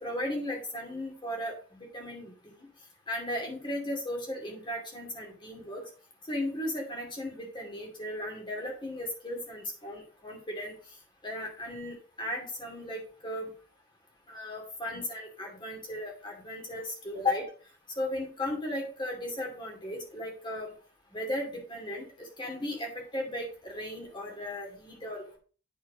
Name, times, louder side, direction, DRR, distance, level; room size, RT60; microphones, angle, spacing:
voice 1, 0.0-2.3 3.1-5.8 6.3-10.7 11.2-13.5 14.3-17.4 18.0-20.7 21.1-25.4, left 1 dB, 25° left, 1 dB, 2.6 m, -36 dB
8.5 x 4.8 x 5.0 m, 0.39 s
head